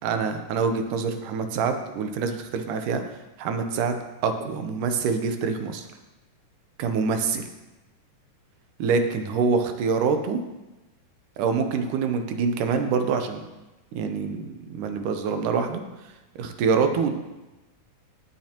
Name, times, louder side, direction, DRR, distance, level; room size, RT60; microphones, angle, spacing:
voice 1, 0.0-3.0 3.4-4.0 4.2-5.9 6.8-7.4 8.8-10.4 11.4-13.5 13.9-15.8 16.4-17.1, right 5 dB, 75° right, 7 dB, 2.3 m, -25 dB
17.0 x 7.5 x 2.9 m, 1.0 s
omnidirectional pair, 3.8 m